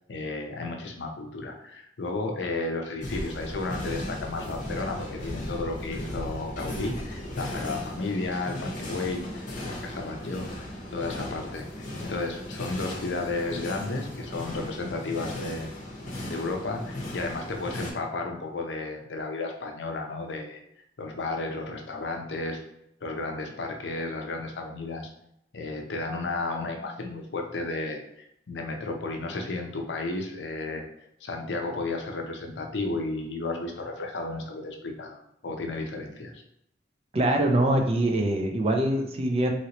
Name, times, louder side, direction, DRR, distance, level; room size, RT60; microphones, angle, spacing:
voice 1, 0.1-11.7 12.0-15.7 16.2-20.6 21.0-22.6 23.0-25.1 25.5-30.8 31.2-36.3, left 3 dB, 80° left, 3 dB, 0.6 m, -33 dB
sound 1, 3.0-17.9, left 1 dB, 45° left, 0.7 m, -36 dB
voice 2, 37.1-39.5, right 1 dB, 35° right, 3 dB, 0.4 m, -23 dB
3.0 x 2.9 x 2.9 m, 0.76 s
head